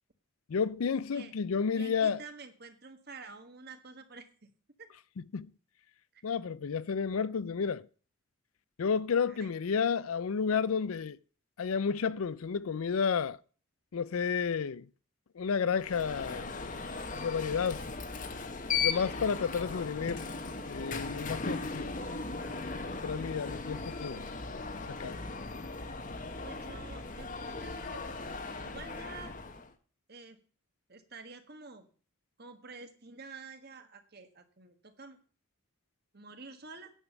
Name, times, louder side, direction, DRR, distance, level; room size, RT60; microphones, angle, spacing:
voice 1, 0.5-2.2 5.2-5.5 6.2-7.9 8.8-11.2 11.6-13.4 13.9-14.9 15.4-16.8 17.1-17.8 18.8-20.3 20.7-22.0 22.8-24.3 24.9-25.2, left 6 dB, 85° left, 0.5 m, -31 dB
voice 2, 1.7-4.5 4.8-4.9 6.1-6.2 9.3-9.5 26.4-28.0 28.4-29.3 30.1-30.4 30.9-31.9 32.4-35.2 36.1-36.9, right 4 dB, 50° right, 1.5 m, -49 dB
Alarm, 15.8-29.7, left 4 dB, 40° left, 1.0 m, -38 dB
9.9 x 7.2 x 7.0 m
head